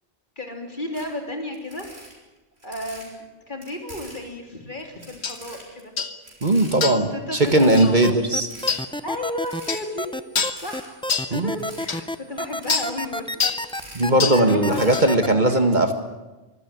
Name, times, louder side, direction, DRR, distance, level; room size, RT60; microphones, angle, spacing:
voice 1, 0.4-1.9 2.6-5.9 7.0-8.2 9.0-10.2 10.6-11.0 11.3-13.4 14.4-15.7, left 1 dB, 45° left, 3 dB, 3.7 m, -33 dB
sound 1, 0.9-1.1 1.5-3.1 3.6-4.3 4.8-5.8 6.2-6.7 7.1-7.2 7.4-8.0 8.4-8.8 9.4-10.0 10.5-10.9 11.5-11.9 12.5-12.9 13.5-14.3 14.6-15.0, right 1 dB, 65° right, 6.5 m, -43 dB
sound 2, 5.2-5.4 6.0-6.2 6.8-7.1 7.8-7.9 8.7-8.9 9.7-9.9 10.3-10.6 11.1-11.3 11.9-12.0 12.7-12.9 13.4-13.6 14.2-14.4 14.9-15.1, left 5 dB, 70° left, 1.8 m, -25 dB
voice 2, 6.4-8.5 11.3-11.6 13.9-15.9, right 1 dB, 40° right, 7 dB, 2.0 m, -19 dB
sound 3, 7.7-15.3, left 1 dB, 5° left, 0.6 m, -30 dB
24.0 x 15.5 x 9.7 m, 1.1 s
omnidirectional pair, 1.2 m